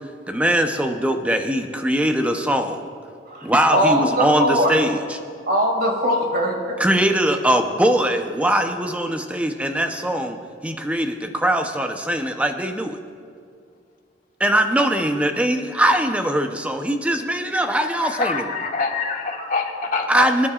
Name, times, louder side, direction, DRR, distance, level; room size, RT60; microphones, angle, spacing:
voice 1, 0.3-2.9 3.4-5.0 6.8-10.4 10.6-13.0 14.4-18.4 20.1-20.5, right 1 dB, 10° right, 5 dB, 0.7 m, -21 dB
voice 2, 3.3-4.7 5.5-6.6, equal, 55° right, 1 dB, 2.3 m, -21 dB
voice 3, 17.8-20.5, left 4 dB, 45° left, 1 dB, 1.4 m, -26 dB
25.5 x 10.0 x 2.4 m, 2.2 s
head